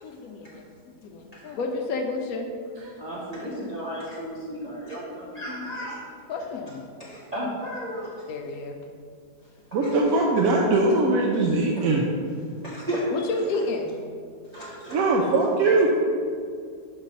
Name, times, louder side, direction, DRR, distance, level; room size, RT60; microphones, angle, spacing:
voice 1, 0.0-0.7 1.0-2.5 6.3-6.8 8.3-8.8 13.1-13.9, left 3 dB, 70° left, 3 dB, 1.0 m, -30 dB
voice 2, 3.0-6.0 6.4-6.5 7.0-8.2 9.8-9.9 10.8-10.9 11.8-11.9 12.6-13.1 14.5-15.0 15.7-15.9, equal, 30° right, -8 dB, 0.8 m, -34 dB
voice 3, 9.7-12.1 14.9-15.9, right 2 dB, 70° right, -1 dB, 0.9 m, -21 dB
6.2 x 3.3 x 5.3 m, 2.2 s
omnidirectional pair, 1.8 m